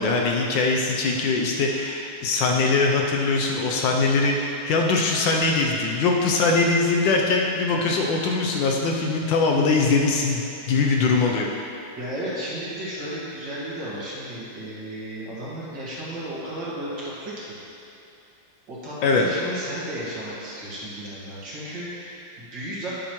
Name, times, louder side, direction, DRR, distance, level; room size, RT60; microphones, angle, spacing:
voice 1, 0.0-11.5 19.0-19.2, left 3 dB, 70° left, 0 dB, 1.3 m, -22 dB
voice 2, 12.0-17.6 18.7-22.9, right 1 dB, 60° right, -8 dB, 2.6 m, -34 dB
9.2 x 8.9 x 3.1 m, 2.8 s
omnidirectional pair, 2.3 m